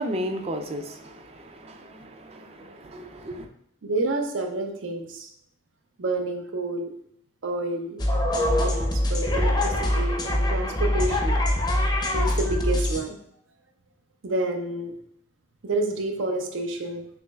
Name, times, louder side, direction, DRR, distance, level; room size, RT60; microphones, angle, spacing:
voice 1, 0.0-3.5, equal, 30° right, 6 dB, 0.4 m, -34 dB
voice 2, 3.8-5.3 6.0-6.9 7.4-8.0 8.3-11.4 12.1-13.2 14.2-14.9 15.6-17.1, right 2 dB, 85° right, 4 dB, 0.6 m, -29 dB
sound 1, 8.0-13.0, left 1 dB, 20° left, 0.5 m, -23 dB
6.0 x 3.0 x 2.3 m, 0.69 s
head